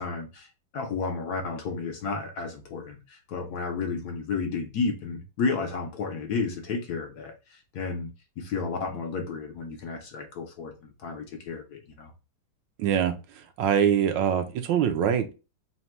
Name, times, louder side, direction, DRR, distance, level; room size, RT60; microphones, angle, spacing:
voice 1, 0.0-8.1 8.4-12.1, left 4 dB, 65° left, 1.1 m, -32 dB
voice 2, 12.8-13.2 13.6-15.3, right 8 dB, 75° right, 1.3 m, -23 dB
4.1 x 2.2 x 4.4 m
omnidirectional pair, 2.1 m